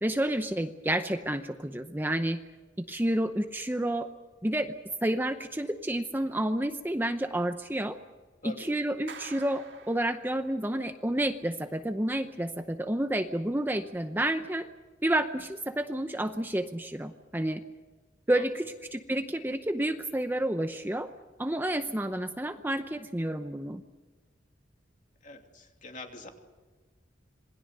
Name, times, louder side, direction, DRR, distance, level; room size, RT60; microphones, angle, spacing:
voice 1, 0.0-2.4 2.8-4.1 4.4-4.7 5.0-8.0 8.4-14.7 15.0-17.6 18.3-21.1 21.4-23.8, right 1 dB, 10° right, 8 dB, 0.7 m, -30 dB
Clapping, 9.1-10.7, right 5 dB, 70° right, 2.0 m, -48 dB
voice 2, 25.2-26.3, left 3 dB, 40° left, 3 dB, 2.8 m, -44 dB
27.0 x 20.5 x 6.7 m, 1.3 s
head